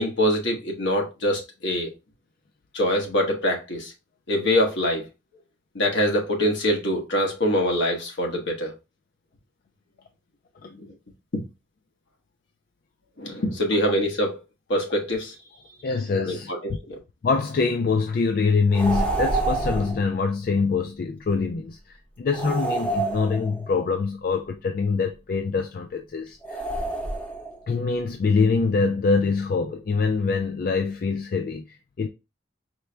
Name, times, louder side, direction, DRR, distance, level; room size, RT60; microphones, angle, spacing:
voice 1, 0.0-1.9 2.7-3.9 4.3-5.0 5.7-8.7 10.8-10.9 11.3-11.4 13.2-14.3 14.7-15.3 16.2-16.6 16.9-17.0, equal, 70° left, 1.1 m, -24 dB
voice 2, 15.8-16.5 17.2-26.6 27.7-32.1, left 4 dB, 50° left, 0.3 m, -24 dB
sound 1, 18.7-20.1 22.3-23.7 26.4-27.6, right 2 dB, 10° left, 0.7 m, -27 dB
4.4 x 2.1 x 3.2 m
head